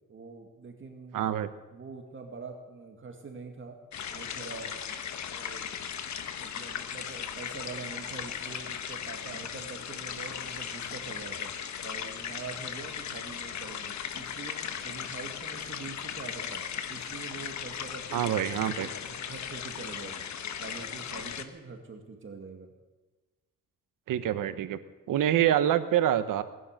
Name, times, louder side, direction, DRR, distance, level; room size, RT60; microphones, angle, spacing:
voice 1, 0.1-1.4 1.7-3.8 4.1-4.8 5.3-5.7 6.3-11.5 11.8-16.6 16.9-20.3 20.6-22.7, right 4 dB, 40° right, 3 dB, 2.1 m, -44 dB
voice 2, 1.1-1.5 18.1-18.9 24.1-24.8 25.1-26.4, right 11 dB, 80° right, 12 dB, 1.1 m, -26 dB
sound 1, 3.9-21.4, left 8 dB, 60° left, 1.3 m, -37 dB
19.0 x 11.0 x 6.6 m, 1.2 s
cardioid pair, 105°, 32 cm